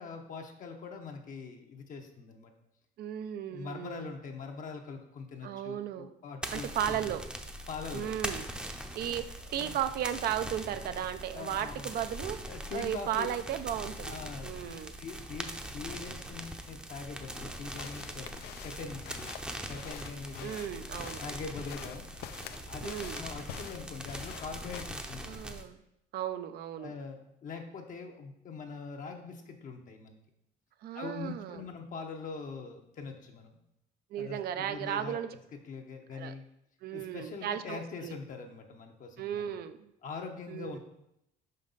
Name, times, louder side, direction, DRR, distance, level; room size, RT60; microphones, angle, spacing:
voice 1, 0.0-2.5 3.5-7.1 7.7-8.1 9.0-9.3 9.5-9.8 11.3-11.9 12.5-13.3 14.0-18.3 18.6-19.3 19.7-20.5 21.2-22.3 22.6-25.3 26.8-30.2 30.9-33.5 34.2-35.2 35.5-36.4 36.9-39.5 40.0-40.8, left 5 dB, 50° left, 3 dB, 0.8 m, -43 dB
voice 2, 3.0-4.1 5.4-6.1 6.5-7.2 7.9-8.5 9.0-12.4 12.7-14.2 14.4-14.9 20.4-21.2 22.8-23.2 25.3-25.8 26.1-26.9 30.8-31.6 34.1-35.4 36.1-36.3 36.8-38.1 39.2-39.9 40.5-40.8, right 10 dB, 65° right, 10 dB, 0.5 m, -35 dB
sound 1, 6.4-25.6, right 1 dB, 5° right, 0.7 m, -42 dB
sound 2, 17.7-25.0, left 9 dB, 70° left, 0.5 m, -47 dB
5.3 x 5.2 x 4.0 m, 0.80 s
cardioid pair, 100°, 17 cm